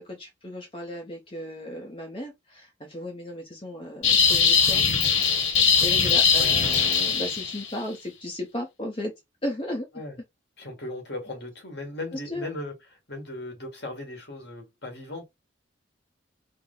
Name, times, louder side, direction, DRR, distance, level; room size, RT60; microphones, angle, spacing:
voice 1, 0.0-4.9 5.8-9.1 9.4-9.9 12.3-12.5, left 1 dB, 30° left, 0.7 m, -35 dB
sound 1, 4.0-7.7, left 6 dB, 85° left, 1.0 m, -21 dB
voice 2, 6.0-6.5 9.9-10.2 10.6-15.2, left 2 dB, 60° left, 1.7 m, -37 dB
4.5 x 2.1 x 3.8 m
head